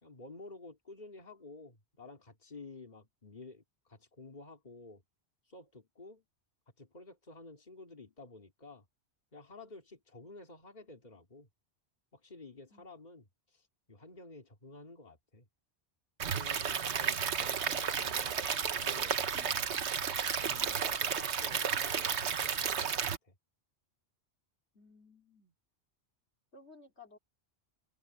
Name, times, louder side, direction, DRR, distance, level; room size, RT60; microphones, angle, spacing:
voice 1, 0.0-5.0 5.5-6.2 6.8-8.9 9.3-11.5 12.1-15.5 16.3-18.5 18.7-19.8 20.4-23.3, left 3 dB, 40° left, 3.0 m, -52 dB
Stream / Liquid, 16.2-23.2, right 7 dB, 85° right, 1.3 m, -32 dB
voice 2, 24.7-25.5 26.5-27.2, left 3 dB, 75° left, 4.3 m, -57 dB
open air
omnidirectional pair, 1.1 m